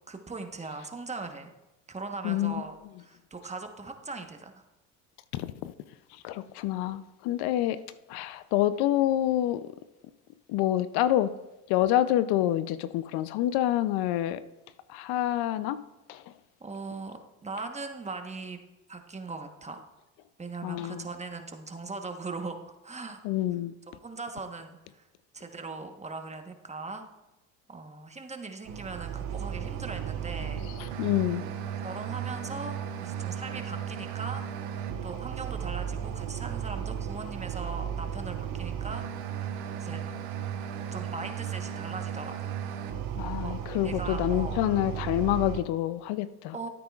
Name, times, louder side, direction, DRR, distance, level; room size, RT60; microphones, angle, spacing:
voice 1, 0.1-1.5 1.9-4.7 16.6-18.6 18.9-19.9 20.4-23.2 23.9-25.1 25.3-27.1 27.7-30.6 31.8-34.4 35.0-39.3 39.8-40.0 40.9-42.6 43.4-43.5 43.8-44.6 46.5-46.7, right 3 dB, 15° right, 1.1 m, -40 dB
voice 2, 5.3-5.7 6.2-7.8 8.1-9.6 10.5-11.3 11.7-14.4 14.9-15.8 16.1-16.2 20.6-21.0 23.2-23.7 31.0-31.4 43.2-46.5, left 13 dB, 70° left, 0.6 m, -27 dB
sound 1, 28.6-45.6, right 8 dB, 80° right, 1.2 m, -35 dB
14.0 x 8.9 x 2.4 m
supercardioid pair, 95°, 40 cm